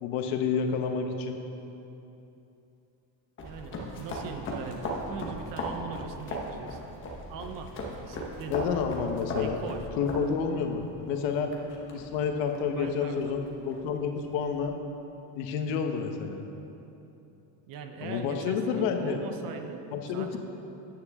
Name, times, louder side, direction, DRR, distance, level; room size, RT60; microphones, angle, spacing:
voice 1, 0.0-1.4 8.5-9.6 10.0-11.5 11.9-14.8 15.4-16.4 18.0-19.2 19.9-20.4, left 6 dB, 80° left, 4 dB, 1.2 m, -29 dB
sound 1, 3.4-14.6, equal, 25° left, 1.3 m, -38 dB
voice 2, 3.4-6.8 7.3-7.7 8.0-8.6 9.4-9.9 12.8-13.4 17.7-19.9 20.1-20.4, right 6 dB, 50° right, 6 dB, 0.8 m, -40 dB
13.5 x 9.5 x 3.6 m, 2.9 s
cardioid pair, 180°, 44 cm